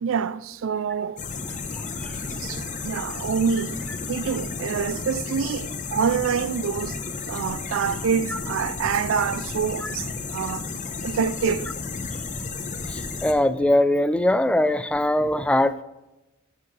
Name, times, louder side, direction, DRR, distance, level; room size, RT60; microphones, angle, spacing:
voice 1, 0.0-1.2 2.1-3.8 4.1-7.0 7.3-10.7 11.0-11.7, right 6 dB, 70° right, 0.4 m, -26 dB
sound 1, 1.2-13.3, left 4 dB, 40° left, 0.9 m, -33 dB
voice 2, 1.7-2.1 8.3-8.4 9.8-9.9 12.9-15.8, left 1 dB, 5° left, 0.3 m, -22 dB
14.0 x 6.8 x 3.3 m
head